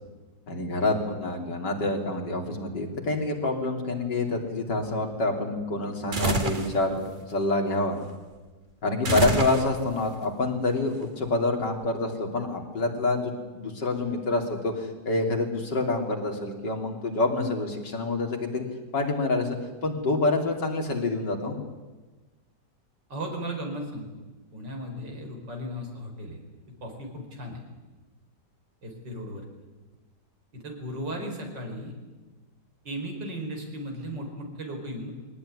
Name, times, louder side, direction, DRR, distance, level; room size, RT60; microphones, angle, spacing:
voice 1, 0.5-7.0 7.3-8.0 8.8-18.7 18.9-19.6 19.8-21.6, left 2 dB, 75° left, 2 dB, 3.7 m, -27 dB
sound 1, 6.1-6.7 9.0-10.0, right 2 dB, 30° right, 1.9 m, -26 dB
voice 2, 23.1-24.1 24.5-26.4 26.8-27.6 28.8-29.4 30.5-31.9 32.9-35.1, equal, 80° right, 2 dB, 5.3 m, -36 dB
21.5 x 18.5 x 9.8 m, 1.2 s
omnidirectional pair, 1.9 m